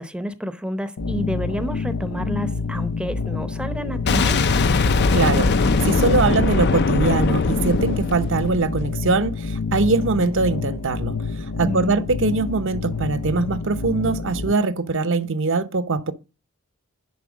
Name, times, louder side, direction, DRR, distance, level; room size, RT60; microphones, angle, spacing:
voice 1, 0.0-4.4 11.6-12.0, equal, 5° right, 0.7 m, -29 dB
sound 1, 1.0-14.5, left 4 dB, 85° left, 0.7 m, -28 dB
Boom, 4.1-8.9, left 4 dB, 50° left, 0.5 m, -20 dB
voice 2, 5.1-11.2 11.6-16.1, right 3 dB, 60° right, 0.8 m, -22 dB
10.5 x 4.6 x 6.2 m
head